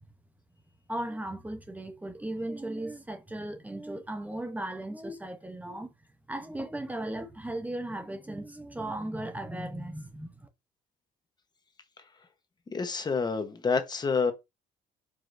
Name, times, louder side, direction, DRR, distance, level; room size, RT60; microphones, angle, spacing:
voice 1, 0.9-5.9 6.3-10.5, right 1 dB, 10° right, 0.7 m, -36 dB
voice 2, 12.7-14.3, left 5 dB, 25° left, 0.9 m, -28 dB
4.9 x 2.9 x 2.5 m
cardioid pair, 110°, 17 cm